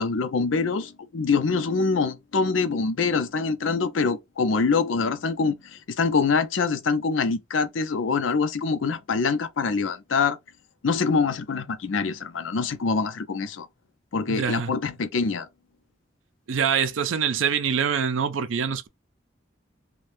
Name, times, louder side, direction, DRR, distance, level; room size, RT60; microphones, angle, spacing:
voice 1, 0.0-10.4 10.8-13.7 14.1-15.5, left 4 dB, 90° left, 0.6 m, -25 dB
voice 2, 14.3-14.7 16.5-18.9, right 7 dB, 90° right, 0.5 m, -25 dB
2.6 x 2.2 x 3.3 m
head